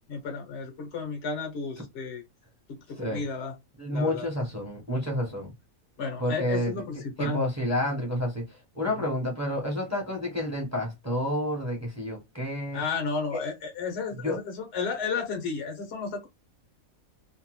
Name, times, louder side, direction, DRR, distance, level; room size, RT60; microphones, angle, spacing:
voice 1, 0.1-2.2 2.7-3.6 3.9-4.3 6.0-7.4 12.7-16.3, left 5 dB, 55° left, 1.0 m, -33 dB
voice 2, 3.8-5.5 6.2-6.7 7.2-8.4 8.7-12.8 14.2-14.4, left 1 dB, 15° right, 0.8 m, -29 dB
2.7 x 2.2 x 3.0 m
omnidirectional pair, 1.5 m